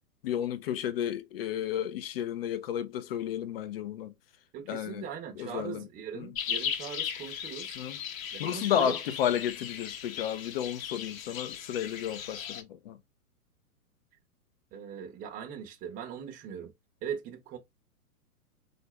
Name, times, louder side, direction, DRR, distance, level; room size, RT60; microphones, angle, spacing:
voice 1, 0.2-4.1 4.7-5.0 5.4-5.9 6.1-6.3 7.8-8.0 8.4-13.0, left 10 dB, 40° left, 0.5 m, -32 dB
voice 2, 4.5-7.7 8.3-9.0 14.7-16.7 17.0-17.6, right 8 dB, 20° right, 0.7 m, -40 dB
sound 1, 6.3-12.6, left 9 dB, 60° left, 0.8 m, -37 dB
3.9 x 2.5 x 3.0 m
hypercardioid pair, 115°, 46 cm